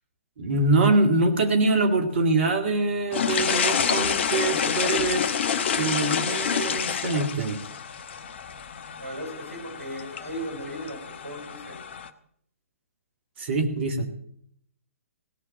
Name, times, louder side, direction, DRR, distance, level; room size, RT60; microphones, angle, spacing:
voice 1, 0.4-5.3 5.8-7.6 13.4-14.1, right 2 dB, 55° right, 6 dB, 2.3 m, -24 dB
sound 1, 3.1-12.1, left 7 dB, 50° left, 0.9 m, -28 dB
voice 2, 9.0-11.8, equal, 75° right, 3 dB, 5.8 m, -37 dB
17.5 x 6.0 x 8.7 m, 0.68 s
figure-of-eight pair, 125°, 8 cm